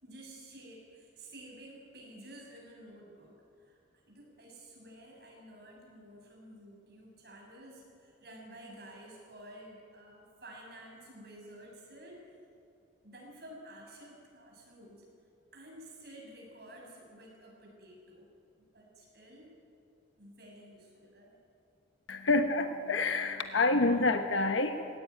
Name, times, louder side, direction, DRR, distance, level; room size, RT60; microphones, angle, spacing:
voice 1, 0.0-3.3 3.6-3.8 4.1-12.2 13.0-15.0 15.5-18.3 18.7-19.6 20.2-21.4, right 1 dB, 55° right, -1 dB, 6.6 m, -51 dB
voice 2, 22.1-25.0, left 3 dB, 85° left, 7 dB, 1.0 m, -28 dB
19.5 x 18.0 x 9.5 m, 2.5 s
head